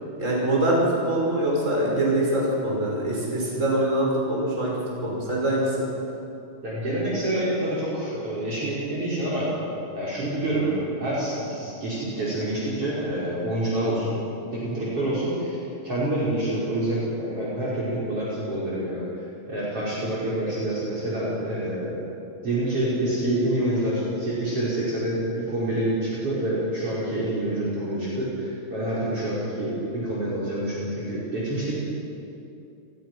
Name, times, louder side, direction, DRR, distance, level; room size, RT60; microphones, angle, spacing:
voice 1, 0.2-4.7 5.0-5.9, right 1 dB, 20° right, -3 dB, 6.3 m, -24 dB
voice 2, 6.6-9.5 10.0-14.2 14.5-15.6 15.8-22.0 22.4-31.8, right 1 dB, 40° right, -6 dB, 5.8 m, -27 dB
30.0 x 19.5 x 6.2 m, 2.8 s
omnidirectional pair, 4.2 m